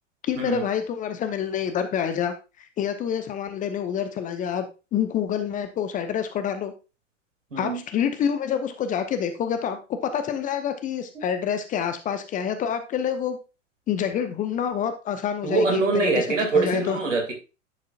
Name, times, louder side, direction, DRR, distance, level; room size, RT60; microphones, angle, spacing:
voice 1, 0.2-4.7 4.9-6.7 7.6-13.4 13.9-15.8 16.1-16.3 16.5-17.0, left 8 dB, 20° left, 9 dB, 0.7 m, -27 dB
voice 2, 15.4-17.3, right 3 dB, 75° right, 3 dB, 2.7 m, -23 dB
10.5 x 6.5 x 2.4 m, 0.29 s
figure-of-eight pair, 95°, 38 cm